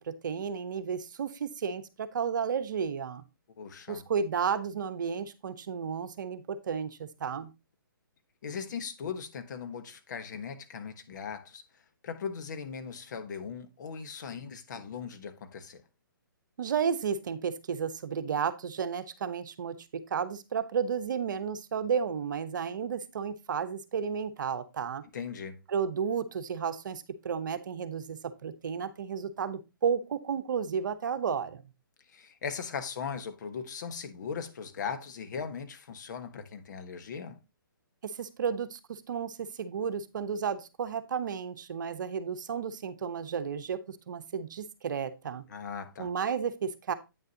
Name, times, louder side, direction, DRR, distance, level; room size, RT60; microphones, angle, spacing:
voice 1, 0.1-3.2 3.9-7.5 16.6-19.8 20.1-25.0 25.7-31.6 38.0-45.4 46.0-46.9, right 7 dB, 60° right, 0.9 m, -32 dB
voice 2, 3.6-4.0 8.4-11.6 12.0-15.8 25.1-25.6 32.1-37.4 45.5-46.1, left 6 dB, 55° left, 1.2 m, -39 dB
8.7 x 6.6 x 2.8 m
hypercardioid pair, 135°, 12 cm